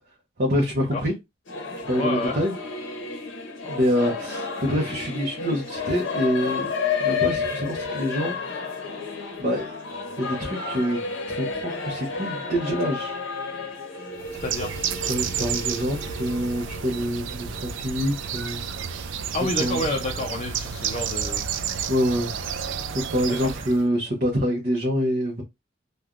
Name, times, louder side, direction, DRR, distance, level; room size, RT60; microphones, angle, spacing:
voice 1, 0.4-1.1 1.8-2.5 3.7-6.7 7.0-8.3 9.4-9.7 10.2-13.2 13.9-14.1 15.1-19.1 19.6-19.9 21.9-22.3 22.9-25.4, equal, 50° right, 0.8 m, -26 dB
Singing / Musical instrument, 1.5-17.8, left 5 dB, 90° left, 0.8 m, -31 dB
voice 2, 2.0-2.4 14.4-14.8 19.3-21.4 23.3-23.4, left 2 dB, 35° left, 0.5 m, -29 dB
Bird, 14.2-23.8, right 7 dB, 80° right, 0.3 m, -31 dB
3.2 x 2.2 x 2.4 m
head